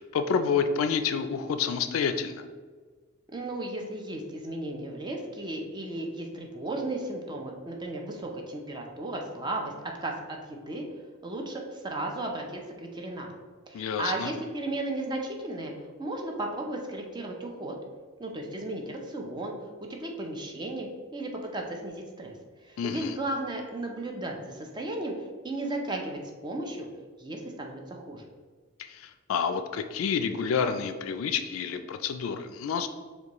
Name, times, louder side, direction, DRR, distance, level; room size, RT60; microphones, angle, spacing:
voice 1, 0.0-2.4 13.7-14.3 22.8-23.2 28.8-32.9, left 6 dB, 70° left, 9 dB, 0.3 m, -29 dB
voice 2, 3.3-10.9 11.2-13.3 13.7-15.7 16.0-17.8 18.2-19.5 19.9-22.3 22.6-25.1 25.4-26.9 27.2-28.2, right 2 dB, 20° right, 1 dB, 0.5 m, -35 dB
6.7 x 2.3 x 2.9 m, 1.5 s
head